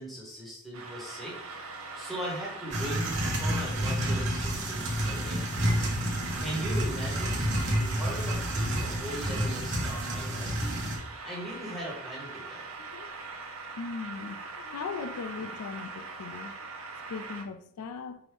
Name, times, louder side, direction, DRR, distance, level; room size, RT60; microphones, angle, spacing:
voice 1, 0.0-1.6 1.9-5.8 6.4-7.4 7.8-10.8 11.2-12.6, right 1 dB, ahead, 1.3 m, -39 dB
sound 1, 0.7-17.4, right 4 dB, 65° right, 0.5 m, -42 dB
sound 2, 2.7-11.0, equal, 50° right, 0.9 m, -29 dB
voice 2, 12.8-13.1 13.8-16.7 17.1-18.2, left 5 dB, 90° left, 0.4 m, -39 dB
4.7 x 2.6 x 3.4 m
head